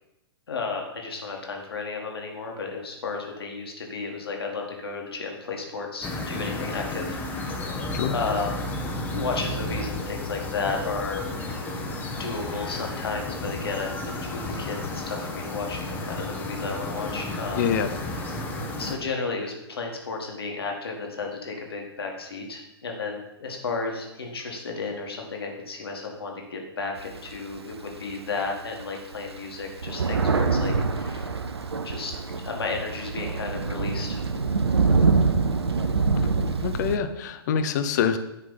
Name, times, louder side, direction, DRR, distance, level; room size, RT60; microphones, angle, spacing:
voice 1, 0.5-8.7 9.1-11.2 12.0-17.7 18.3-18.4 18.8-31.4 31.8-32.1 32.4-34.2, left 4 dB, 65° left, 1 dB, 1.8 m, -33 dB
sound 1, 6.0-19.0, left 2 dB, 15° left, 1.0 m, -32 dB
voice 2, 17.6-17.9 36.6-38.2, left 7 dB, 45° left, 9 dB, 0.7 m, -25 dB
Thunder, 27.0-28.2 28.8-28.9 29.1-37.0, right 4 dB, 75° right, 0.7 m, -25 dB
9.9 x 3.7 x 5.6 m, 0.92 s
figure-of-eight pair, 115°, 14 cm